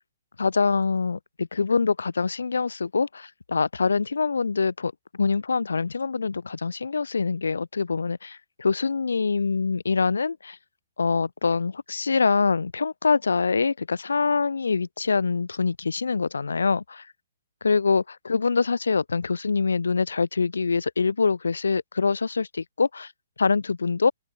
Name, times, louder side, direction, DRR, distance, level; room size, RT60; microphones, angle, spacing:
voice 1, 0.4-4.9 5.2-10.6 11.0-17.0 17.6-23.1 23.4-24.1, left 4 dB, 85° left, 1.5 m, -24 dB
open air
hypercardioid pair, 140°, 0 cm